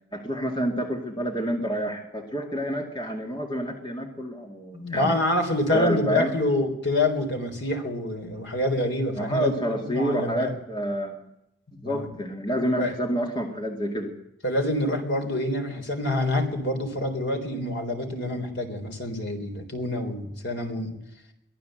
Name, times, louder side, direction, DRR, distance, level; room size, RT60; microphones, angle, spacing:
voice 1, 0.1-5.2 5.7-6.3 9.2-11.3 11.7-14.1, equal, 25° left, 3 dB, 2.2 m, -28 dB
voice 2, 4.7-10.5 11.8-12.2 12.8-12.9 14.4-21.0, left 1 dB, 60° left, 5 dB, 3.9 m, -27 dB
23.0 x 14.5 x 7.8 m, 0.84 s
head